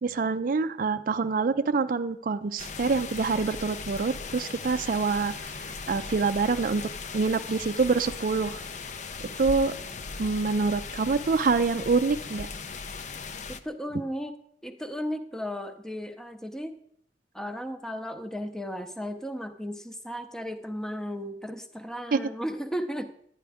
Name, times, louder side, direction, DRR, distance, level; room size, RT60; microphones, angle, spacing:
voice 1, 0.0-8.6 9.2-9.8 10.2-12.5 22.1-22.2, right 4 dB, 50° right, 10 dB, 0.4 m, -26 dB
sound 1, 2.6-13.6, left 4 dB, 45° left, 0.5 m, -38 dB
voice 2, 13.5-14.3 14.6-16.8 17.3-23.1, equal, 5° left, 8 dB, 0.6 m, -35 dB
11.5 x 9.7 x 3.5 m, 0.67 s
head